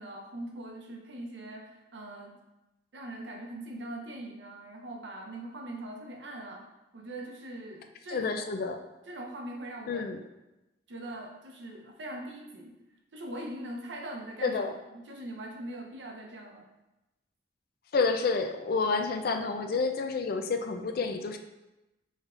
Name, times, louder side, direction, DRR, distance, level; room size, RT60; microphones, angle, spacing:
voice 1, 0.0-2.4 2.9-6.7 6.9-8.5 9.1-10.1 10.9-12.7 13.1-14.6 14.9-16.7, right 1 dB, 85° right, 1 dB, 0.8 m, -41 dB
voice 2, 8.1-8.8 9.9-10.2 14.4-14.7 17.9-21.4, left 4 dB, 55° left, 6 dB, 0.4 m, -29 dB
5.4 x 3.4 x 2.5 m, 0.99 s
head